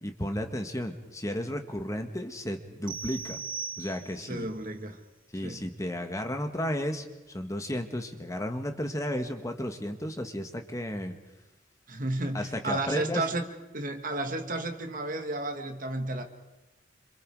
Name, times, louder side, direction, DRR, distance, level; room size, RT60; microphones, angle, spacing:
voice 1, 0.0-3.4 3.8-4.5 5.3-11.1 12.3-13.3, left 1 dB, 15° left, 5 dB, 1.7 m, -33 dB
sound 1, 2.9-4.4, right 5 dB, 25° right, 1.2 m, -38 dB
voice 2, 4.2-5.0 5.4-5.6 11.9-13.5 13.7-16.2, right 2 dB, 45° right, 6 dB, 2.2 m, -32 dB
28.0 x 26.5 x 4.9 m, 1.0 s
head